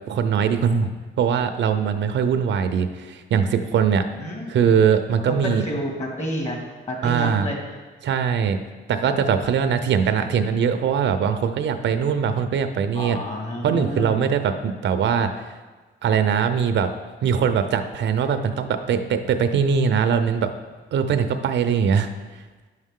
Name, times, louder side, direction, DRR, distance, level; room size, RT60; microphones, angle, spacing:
voice 1, 0.1-0.9 1.2-4.0 4.5-5.6 7.0-7.5 8.0-8.6 8.9-13.2 13.6-15.4 16.0-16.9 17.2-20.5 20.9-22.1, right 7 dB, 65° right, 8 dB, 0.6 m, -21 dB
voice 2, 4.2-4.7 5.3-6.6 6.9-7.6 12.9-14.3, equal, 35° left, 0 dB, 2.2 m, -29 dB
9.4 x 6.4 x 3.7 m, 1.3 s
cardioid pair, 90°, 20 cm